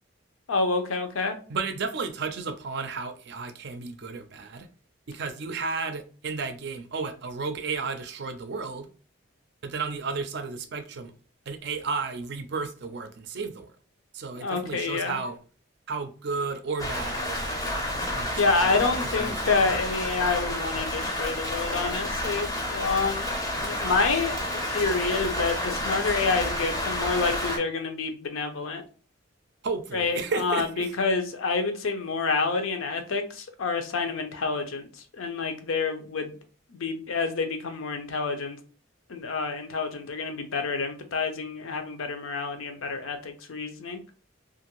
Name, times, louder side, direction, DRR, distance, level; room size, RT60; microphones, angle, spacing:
voice 1, 0.5-1.4 14.4-15.2 18.4-23.3 23.6-28.8 29.9-34.9 35.1-36.4 36.7-38.6 39.1-44.0, left 4 dB, 80° left, 0.6 m, -28 dB
voice 2, 1.5-4.7 5.1-8.9 9.6-11.1 11.5-13.7 14.1-15.4 15.9-17.7 18.1-19.4 29.6-30.9, right 4 dB, 55° right, 0.4 m, -33 dB
Rain, 16.8-27.6, left 1 dB, 15° left, 0.5 m, -30 dB
2.5 x 2.5 x 2.9 m
head